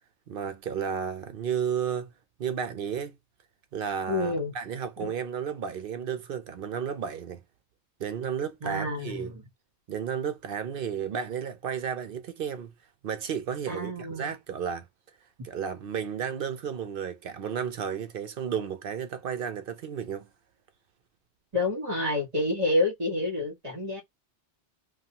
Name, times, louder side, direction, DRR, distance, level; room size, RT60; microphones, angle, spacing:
voice 1, 0.3-2.1 2.4-3.2 3.7-7.4 8.0-9.3 9.9-12.7 13.0-14.9 15.4-20.3, right 7 dB, 60° right, 0.7 m, -33 dB
voice 2, 4.1-4.5 5.0-5.1 8.6-9.4 13.7-14.3 21.5-24.0, left 2 dB, 35° right, 1.5 m, -28 dB
2.6 x 2.3 x 2.7 m
omnidirectional pair, 1.1 m